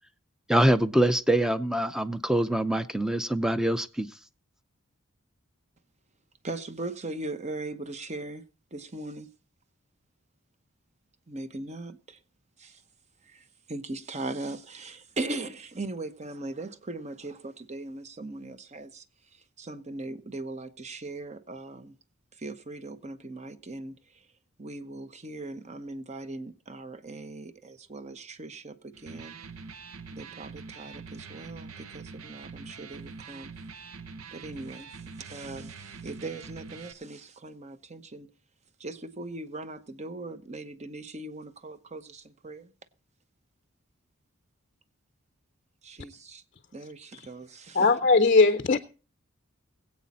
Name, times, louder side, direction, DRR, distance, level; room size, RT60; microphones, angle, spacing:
voice 1, 0.5-4.1, right 1 dB, 5° right, 0.6 m, -24 dB
voice 2, 6.4-8.4 8.7-9.3 11.3-12.2 12.6-12.7 13.3-13.4 13.7-19.0 19.6-21.9 22.4-23.9 24.6-28.7 29.0-29.4 30.1-33.5 34.3-34.9 35.2-35.7 36.0-38.3 38.8-42.7 45.8-46.4 46.7-47.9, right 2 dB, 35° right, 0.9 m, -39 dB
Electric guitar, 28.9-36.9, right 4 dB, 90° right, 0.9 m, -44 dB
voice 3, 47.7-48.8, left 3 dB, 40° left, 0.6 m, -19 dB
21.0 x 8.5 x 4.2 m
head